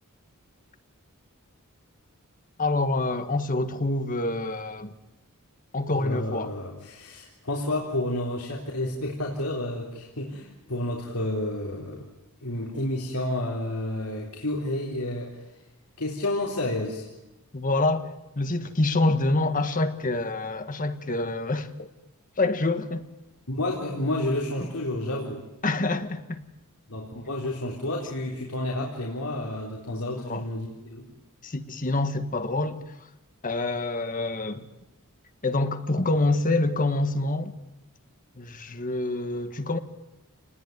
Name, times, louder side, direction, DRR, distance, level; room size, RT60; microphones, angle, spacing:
voice 1, 2.6-4.9 5.7-6.5 17.5-21.9 22.4-23.0 25.6-26.4 30.2-30.5 31.4-32.8 33.4-34.7 35.4-37.5 38.3-39.8, left 2 dB, 40° left, 1.5 m, -26 dB
voice 2, 5.9-12.1 12.4-15.5 16.0-17.1 23.5-25.4 26.9-31.1, left 1 dB, 85° left, 3.9 m, -30 dB
29.5 x 20.0 x 9.5 m
head